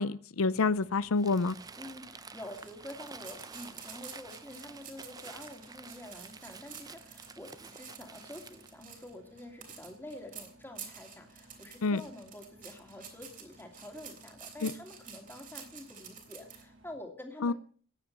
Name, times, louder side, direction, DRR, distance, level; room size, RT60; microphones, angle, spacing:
voice 1, 0.0-1.6 11.8-12.0 14.6-14.7 17.4-17.5, left 3 dB, 85° left, 16 dB, 0.6 m, -28 dB
Engine, 0.5-16.9, right 1 dB, 60° right, 3.3 m, -60 dB
Crumpling crinkling, 1.2-8.8, right 4 dB, 15° right, 0.5 m, -50 dB
voice 2, 1.8-17.5, left 1 dB, 10° left, 3 dB, 2.6 m, -47 dB
sound 1, 2.5-16.6, right 7 dB, 40° right, 3.3 m, -49 dB
15.0 x 10.0 x 6.6 m, 0.43 s
head